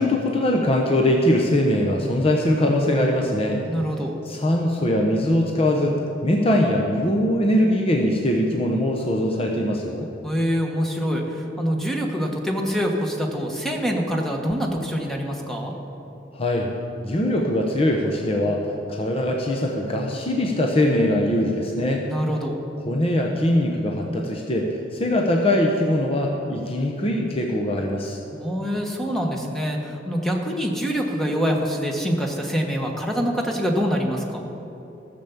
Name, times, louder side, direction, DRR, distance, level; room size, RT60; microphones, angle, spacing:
voice 1, 0.0-3.6 4.3-6.0 6.2-10.1 16.3-16.7 17.0-18.6 18.9-22.0 22.8-28.2, left 1 dB, 30° left, 0 dB, 0.9 m, -21 dB
voice 2, 3.6-4.2 10.2-15.7 22.0-22.6 28.3-34.4, equal, ahead, 1 dB, 1.2 m, -25 dB
14.0 x 6.9 x 7.2 m, 2.9 s
head